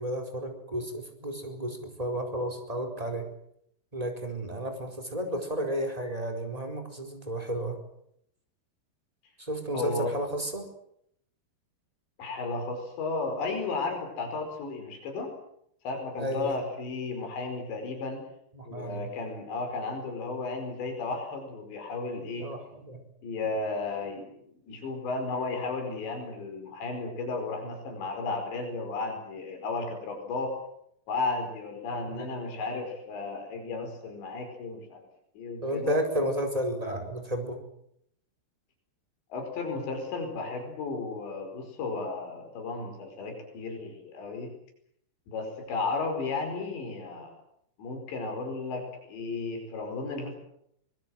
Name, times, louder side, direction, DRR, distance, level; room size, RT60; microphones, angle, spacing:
voice 1, 0.0-3.2 3.9-7.8 9.4-10.7 16.2-16.5 18.5-19.1 22.4-23.0 32.1-32.3 35.6-37.6, right 1 dB, 10° right, 4 dB, 4.1 m, -32 dB
voice 2, 9.7-10.1 12.2-15.3 15.9-18.2 18.6-22.5 23.2-24.3 24.6-30.5 31.1-35.0 35.4-36.0 39.3-44.5 45.3-47.3 47.8-50.4, left 3 dB, 90° left, 4 dB, 7.1 m, -34 dB
25.0 x 21.0 x 7.7 m, 0.72 s
omnidirectional pair, 4.9 m